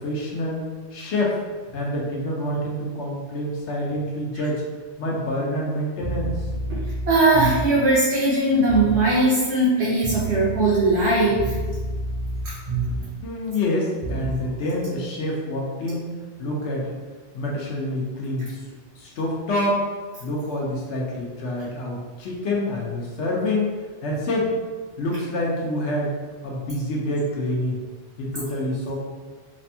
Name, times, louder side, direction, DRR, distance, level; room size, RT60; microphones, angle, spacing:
voice 1, 0.0-0.6 0.9-1.4 1.7-4.6 5.0-6.3 13.2-16.1 16.4-16.8 17.3-18.6 19.0-19.8 20.2-23.7 24.0-24.5 25.0-26.1 26.4-27.8 28.2-29.0, left 1 dB, 75° left, -3 dB, 1.0 m, -27 dB
sound 1, 6.0-7.9 8.7-9.1 10.0-13.2 14.0-14.4, right 2 dB, 40° right, 0.6 m, -29 dB
voice 2, 7.1-11.5, right 2 dB, 70° right, -6 dB, 0.9 m, -19 dB
3.4 x 2.2 x 2.7 m, 1.4 s
omnidirectional pair, 1.2 m